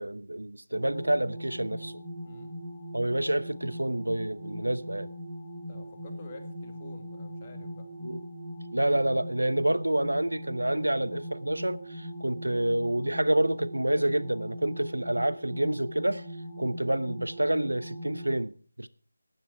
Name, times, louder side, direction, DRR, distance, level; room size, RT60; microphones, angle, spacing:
voice 1, 0.0-1.9 2.9-5.1 8.0-8.2 8.7-16.2 16.6-18.9, right 1 dB, 80° right, 0.8 m, -28 dB
sound 1, 0.7-18.4, equal, 5° right, 5.9 m, -40 dB
voice 2, 2.2-2.6 5.7-7.9, left 2 dB, 25° left, 1.9 m, -49 dB
14.5 x 10.0 x 4.6 m
figure-of-eight pair, 160°, 0 cm